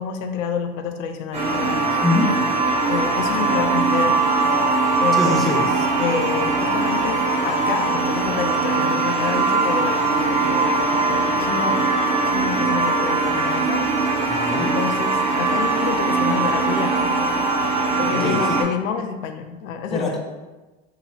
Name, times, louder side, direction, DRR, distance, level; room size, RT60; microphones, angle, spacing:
voice 1, 0.0-2.0 2.9-4.3 5.0-11.8 12.3-13.8 14.2-14.3 14.6-17.0 18.0-20.2, left 6 dB, 80° left, 7 dB, 0.6 m, -28 dB
sound 1, 1.3-18.6, right 3 dB, 15° right, 1.0 m, -21 dB
voice 2, 2.0-2.3 5.1-5.6 14.3-14.7 18.1-18.6 19.9-20.2, left 2 dB, ahead, -1 dB, 0.3 m, -23 dB
2.9 x 2.9 x 4.1 m, 1.2 s
hypercardioid pair, 95°, 39 cm